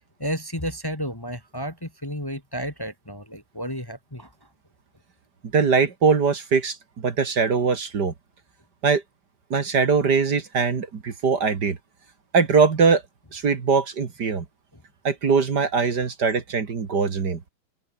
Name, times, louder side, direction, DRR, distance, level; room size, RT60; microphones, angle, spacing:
voice 1, 0.2-4.3, equal, 10° left, 2.0 m, -32 dB
voice 2, 5.5-8.1 8.8-9.0 9.5-11.8 12.3-13.0 13.3-14.4 15.0-17.4, right 5 dB, 55° right, 2.5 m, -21 dB
omnidirectional pair, 2.3 m